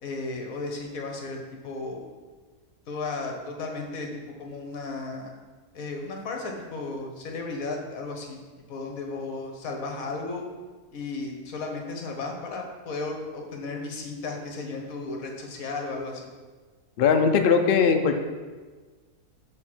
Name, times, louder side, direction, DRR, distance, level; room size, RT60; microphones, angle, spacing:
voice 1, 0.0-1.4 1.6-2.0 2.9-4.1 4.4-5.4 5.7-8.4 8.7-10.4 10.9-16.3, left 3 dB, 60° left, 2 dB, 1.4 m, -34 dB
voice 2, 17.0-18.2, left 6 dB, 90° left, 5 dB, 0.4 m, -20 dB
6.4 x 3.7 x 6.1 m, 1.4 s
omnidirectional pair, 1.7 m